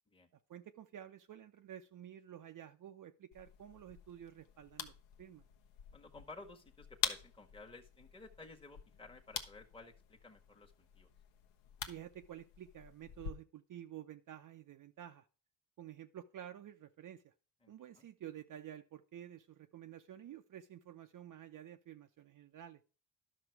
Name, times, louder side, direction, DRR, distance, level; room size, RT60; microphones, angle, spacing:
voice 1, 0.5-5.4 11.9-15.3 15.8-17.3 17.7-22.8, right 11 dB, 50° right, 7 dB, 0.7 m, -51 dB
sound 1, 3.3-13.3, left 8 dB, 85° left, 1.2 m, -46 dB
voice 2, 5.9-11.1 17.6-18.1, left 3 dB, 10° left, 2 dB, 1.3 m, -55 dB
11.0 x 6.0 x 4.6 m, 0.36 s
cardioid pair, 85°, 43 cm